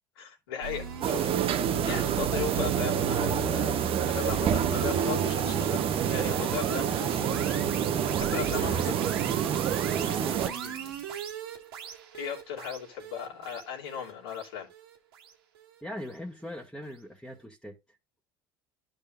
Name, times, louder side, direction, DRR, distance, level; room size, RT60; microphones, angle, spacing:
voice 1, 0.2-1.4 1.8-9.0 12.1-14.7, left 9 dB, 85° left, 3.0 m, -37 dB
sound 1, 0.6-15.8, right 6 dB, 85° right, 1.7 m, -36 dB
sound 2, 1.0-10.5, right 9 dB, 50° right, 1.0 m, -28 dB
voice 2, 8.5-9.0 9.8-11.0 15.8-17.8, left 1 dB, 5° left, 1.7 m, -42 dB
13.0 x 5.4 x 2.5 m
hypercardioid pair, 70°, 12 cm